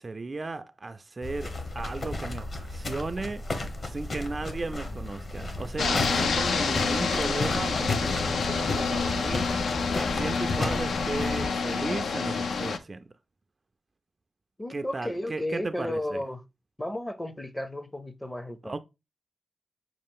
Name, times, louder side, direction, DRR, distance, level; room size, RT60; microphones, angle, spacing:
voice 1, 0.0-3.4 3.8-9.5 10.1-13.0 14.7-16.2 18.6-18.8, right 3 dB, 35° right, 0.3 m, -35 dB
sound 1, 1.2-11.5, left 2 dB, 45° left, 1.1 m, -33 dB
sound 2, 5.8-12.8, left 5 dB, 85° left, 0.5 m, -28 dB
voice 2, 14.6-16.4 16.8-18.8, left 1 dB, 15° left, 0.6 m, -33 dB
6.3 x 2.4 x 3.5 m
wide cardioid pair, 105°, 0 cm